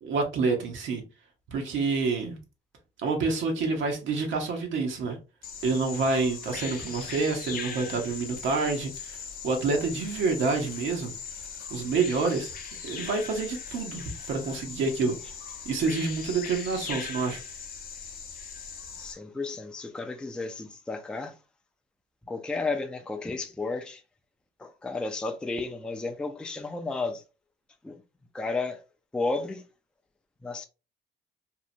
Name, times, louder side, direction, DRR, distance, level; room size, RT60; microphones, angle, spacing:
voice 1, 0.0-1.0 1.5-2.4 3.0-5.2 5.6-11.1 11.7-12.5 12.8-15.2 15.7-17.4, right 4 dB, 75° right, 0.7 m, -28 dB
Bird vocalization bird call bird song, 5.4-19.1, left 6 dB, 50° left, 0.6 m, -40 dB
voice 2, 19.0-21.4 22.3-24.0 24.6-27.2 27.8-28.0 28.3-28.8 29.1-29.6 30.4-30.6, left 3 dB, 5° left, 0.3 m, -32 dB
2.7 x 2.0 x 2.5 m
cardioid pair, 90°, 20 cm